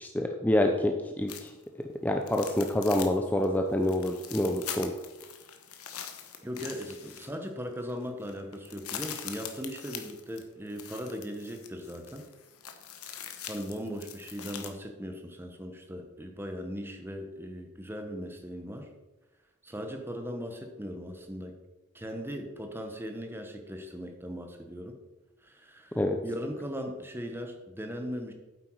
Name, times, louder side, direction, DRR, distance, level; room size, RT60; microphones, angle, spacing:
voice 1, 0.0-1.5 2.0-4.9 26.0-26.2, left 1 dB, 5° left, 3 dB, 0.5 m, -27 dB
sound 1, 1.3-1.6 2.2-3.2 3.4-3.5 3.8-7.5 7.9-8.0 8.2-14.7, left 8 dB, 75° left, 1.1 m, -42 dB
voice 2, 6.4-12.2 13.5-18.9 19.6-21.5 21.9-25.0 25.4-28.3, equal, 10° right, 4 dB, 1.1 m, -38 dB
8.8 x 7.9 x 4.7 m, 1.1 s
head